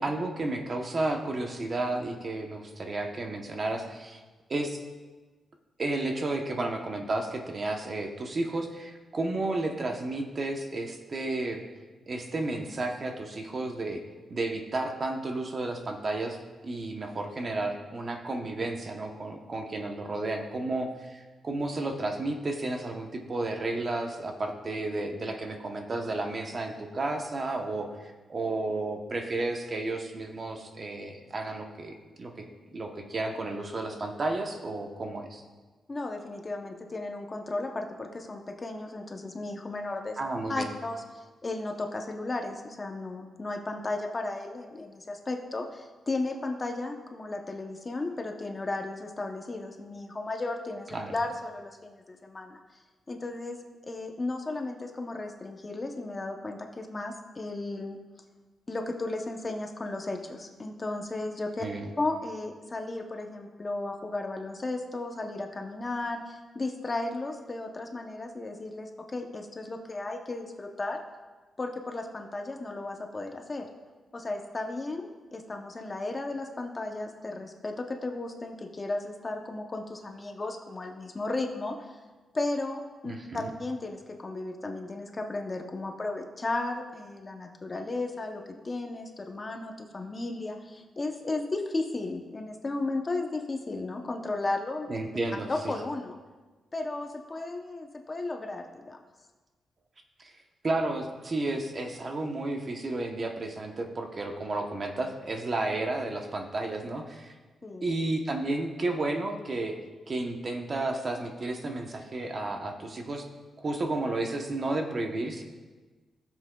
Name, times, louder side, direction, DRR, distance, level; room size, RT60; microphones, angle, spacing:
voice 1, 0.0-4.2 4.5-4.8 5.8-11.6 12.1-14.0 14.3-16.4 16.6-32.3 32.7-35.4 40.2-40.7 50.9-51.1 61.6-61.9 83.0-83.5 94.9-95.7 100.2-100.4 100.6-107.3 107.8-109.7 110.1-113.2 113.6-115.4, right 2 dB, 30° right, 3 dB, 0.8 m, -32 dB
voice 2, 35.9-40.2 40.5-52.6 53.1-53.6 53.8-58.0 58.7-61.7 62.0-71.0 71.6-73.7 74.1-81.9 82.3-94.9 95.5-96.2 96.7-99.0 107.6-107.9, left 2 dB, 25° left, 3 dB, 0.7 m, -34 dB
17.0 x 7.3 x 2.3 m, 1.3 s
wide cardioid pair, 160°, 0 cm